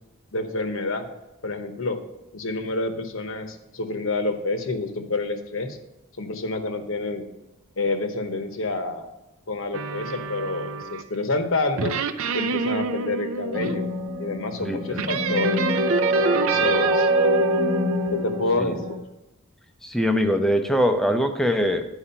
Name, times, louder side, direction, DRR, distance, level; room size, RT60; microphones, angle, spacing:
voice 1, 0.3-1.2 1.4-2.0 2.3-5.8 6.2-7.3 7.8-9.1 9.5-12.0 12.3-13.9 14.2-15.7 16.2-17.1 18.1-19.0, left 2 dB, 60° left, 7 dB, 0.9 m, -28 dB
sound 1, 9.7-11.2 11.8-13.7 14.9-18.5, right 3 dB, 65° right, 0.5 m, -27 dB
sound 2, 13.5-19.0, right 1 dB, 35° right, 1.1 m, -25 dB
voice 2, 14.6-15.2 16.5-16.7 18.6-18.8 19.8-21.9, equal, ahead, 6 dB, 0.5 m, -23 dB
10.0 x 4.8 x 5.6 m, 0.99 s
head